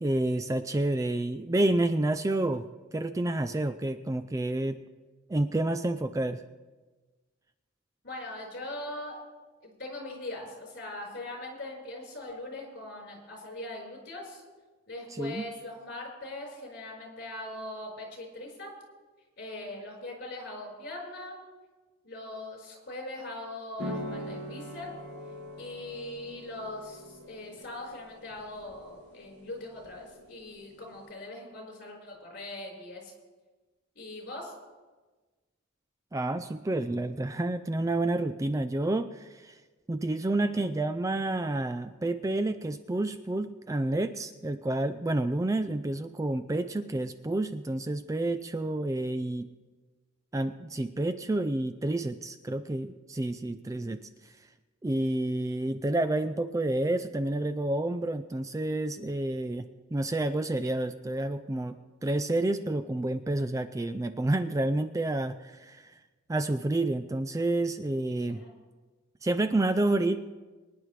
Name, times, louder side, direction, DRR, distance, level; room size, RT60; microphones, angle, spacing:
voice 1, 0.0-4.8 5.3-6.4 15.1-15.4 36.1-39.6 39.9-49.5 50.3-54.3 54.8-65.9 66.3-68.4 69.2-70.2, right 2 dB, 15° right, 9 dB, 0.3 m, -29 dB
voice 2, 8.0-9.2 9.6-14.4 14.9-18.7 19.4-21.3 22.0-25.0 25.6-33.1 33.9-34.5 68.3-68.5, left 1 dB, 50° left, -1 dB, 4.6 m, -41 dB
sound 1, 23.8-31.1, left 1 dB, 65° right, 5.4 m, -43 dB
24.0 x 10.0 x 3.2 m, 1.3 s
head